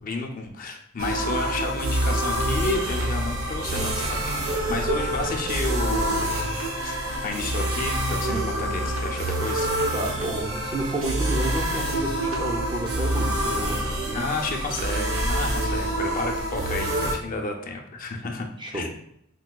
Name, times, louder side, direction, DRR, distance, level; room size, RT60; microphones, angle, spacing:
voice 1, 0.0-4.2 4.4-6.4 6.8-9.7 14.1-18.5 18.7-18.9, left 3 dB, 40° left, 3 dB, 0.4 m, -31 dB
sound 1, 1.0-17.1, right 1 dB, 80° right, 0.7 m, -26 dB
voice 2, 8.3-8.7 9.9-14.3 18.6-18.9, right 1 dB, 20° right, 2 dB, 0.4 m, -31 dB
4.5 x 2.3 x 2.2 m, 0.74 s
head